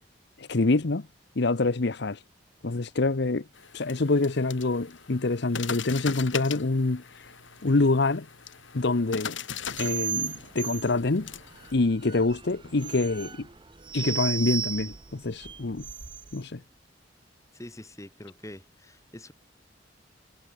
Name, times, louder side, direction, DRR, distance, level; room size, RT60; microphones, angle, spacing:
voice 1, 0.4-1.1 1.4-2.2 2.6-3.5 3.7-7.3 7.6-8.3 8.7-9.4 9.8-11.3 11.7-13.5 13.9-15.9 16.3-16.6, left 3 dB, 65° left, 0.9 m, -26 dB
sound 1, 3.5-11.7, left 6 dB, 90° left, 4.3 m, -40 dB
sound 2, 9.7-16.4, right 7 dB, 25° right, 0.8 m, -35 dB
voice 2, 17.5-19.3, left 1 dB, 15° left, 2.3 m, -45 dB
head